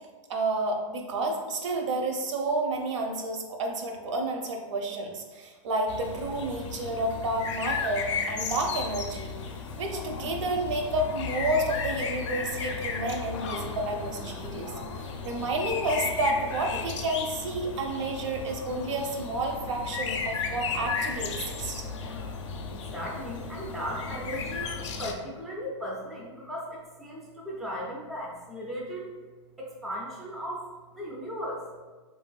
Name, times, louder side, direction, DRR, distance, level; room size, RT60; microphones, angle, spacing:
voice 1, 0.3-9.3 9.8-14.7 15.0-21.8, right 2 dB, 75° right, 2 dB, 0.6 m, -30 dB
sound 1, 5.9-25.1, left 5 dB, 70° left, 0.4 m, -35 dB
voice 2, 22.7-29.1 29.6-30.7 31.0-31.6, equal, ahead, -5 dB, 0.3 m, -37 dB
3.2 x 2.6 x 2.3 m, 1.3 s
supercardioid pair, 155°, 16 cm